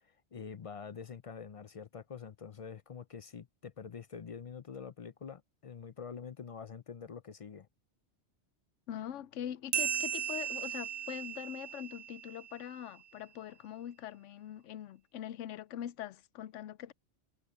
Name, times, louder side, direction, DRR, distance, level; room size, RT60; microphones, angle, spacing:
voice 1, 0.0-7.7, left 6 dB, 50° left, 0.4 m, -46 dB
voice 2, 8.9-16.9, left 10 dB, 80° left, 0.9 m, -43 dB
sound 1, 9.7-12.8, right 9 dB, 65° right, 0.4 m, -36 dB
omnidirectional pair, 1.2 m